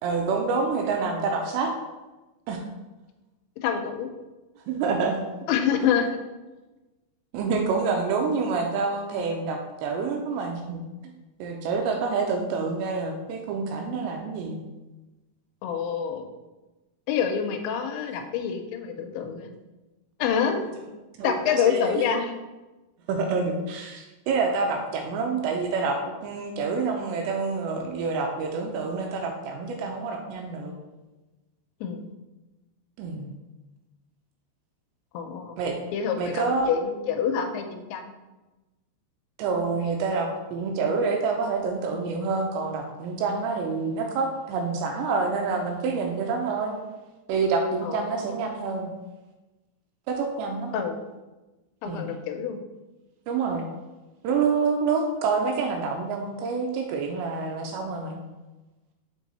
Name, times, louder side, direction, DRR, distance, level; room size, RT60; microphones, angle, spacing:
voice 1, 0.0-1.7 2.5-2.6 4.7-5.2 7.3-10.8 11.4-14.6 21.2-21.9 23.1-30.7 33.0-33.3 35.6-35.8 36.2-36.7 39.4-46.8 47.3-48.9 50.1-50.7 51.9-52.1 53.3-53.7 54.2-58.2, right 4 dB, 80° right, 3 dB, 2.6 m, -27 dB
voice 2, 3.6-4.1 5.5-6.1 15.6-16.2 17.1-19.5 20.2-20.6 21.2-22.3 31.8-32.1 35.1-35.6 35.9-38.1 47.8-48.4 50.7-51.0 51.8-52.6, left 7 dB, 80° left, 5 dB, 2.8 m, -27 dB
6.4 x 4.5 x 4.0 m, 1.1 s
omnidirectional pair, 5.4 m